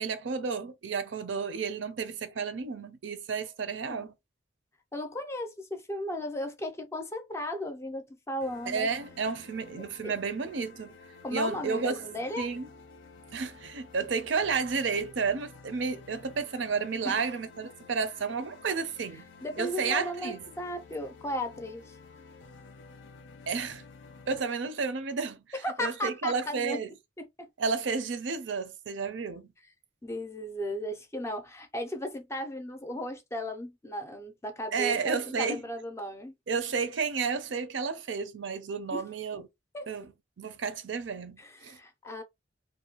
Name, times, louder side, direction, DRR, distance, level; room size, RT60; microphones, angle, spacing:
voice 1, 0.0-4.1 8.7-11.0 11.3-12.0 12.4-12.7 13.3-19.3 19.6-20.4 23.5-23.8 24.3-25.4 25.8-26.9 27.6-29.5 34.7-35.6 36.5-39.4 39.9-40.1 40.4-41.8, right 5 dB, 80° right, 0.5 m, -31 dB
voice 2, 4.9-8.9 9.8-10.2 11.2-12.5 17.0-17.3 19.4-22.0 25.5-26.8 27.2-27.5 30.0-36.3 38.9-39.0 39.7-39.9 41.4-42.2, left 1 dB, 15° left, 0.4 m, -36 dB
sound 1, 8.4-24.4, left 4 dB, 80° left, 0.5 m, -52 dB
2.5 x 2.2 x 2.9 m
head